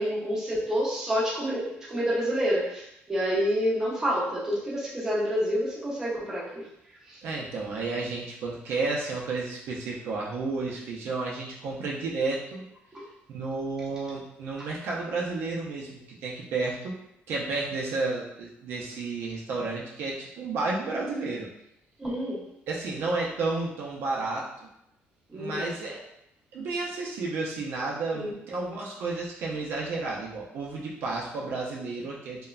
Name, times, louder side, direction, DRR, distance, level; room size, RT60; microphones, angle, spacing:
voice 1, 0.0-6.6 7.1-7.2 12.9-13.0 22.0-22.4 25.3-25.8 28.1-28.3, equal, 15° right, -6 dB, 0.6 m, -28 dB
voice 2, 7.2-12.6 13.3-17.0 17.3-21.5 22.7-24.5 25.3-26.0 26.5-32.5, right 3 dB, 60° right, -3 dB, 0.4 m, -32 dB
3.0 x 2.1 x 2.3 m, 0.80 s
cardioid pair, 165°, 4 cm